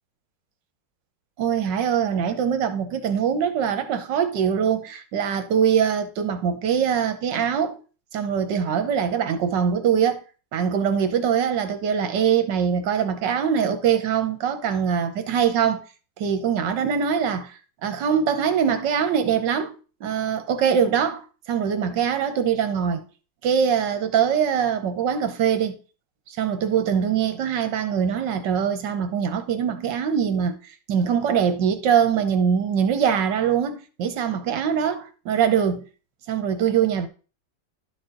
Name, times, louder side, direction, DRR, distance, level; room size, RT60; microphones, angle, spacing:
voice 1, 1.4-7.8 8.1-10.2 10.5-15.8 16.2-19.8 20.0-23.0 23.4-25.8 26.3-35.8 36.3-37.1, right 7 dB, 75° right, 1.5 m, -23 dB
12.0 x 4.2 x 3.8 m
omnidirectional pair, 2.0 m